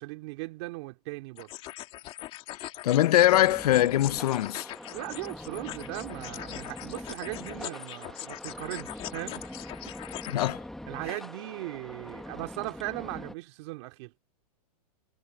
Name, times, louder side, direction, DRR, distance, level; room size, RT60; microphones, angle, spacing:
voice 1, 0.0-1.5 4.9-9.5 10.9-14.2, right 22 dB, 45° right, 2.4 m, -38 dB
sound 1, 1.4-10.5, left 15 dB, 25° left, 2.1 m, -42 dB
voice 2, 2.8-4.7 10.3-10.6, left 13 dB, 75° left, 0.5 m, -22 dB
sound 2, 3.3-13.4, left 1 dB, ahead, 1.3 m, -43 dB
hypercardioid pair, 155°, 20 cm